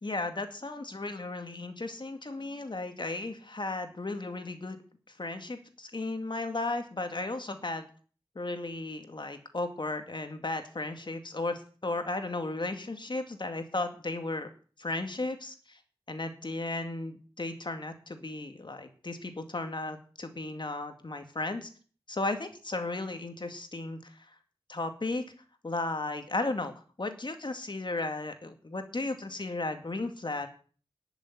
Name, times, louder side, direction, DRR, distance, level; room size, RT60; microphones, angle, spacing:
voice 1, 0.0-4.8 5.2-7.9 8.4-14.5 14.8-15.8 16.1-21.7 22.1-24.3 24.7-25.2 25.6-26.7 27.0-30.5, left 2 dB, 50° left, 7 dB, 2.2 m, -35 dB
11.5 x 7.1 x 9.8 m, 0.40 s
wide cardioid pair, 50°, 10 cm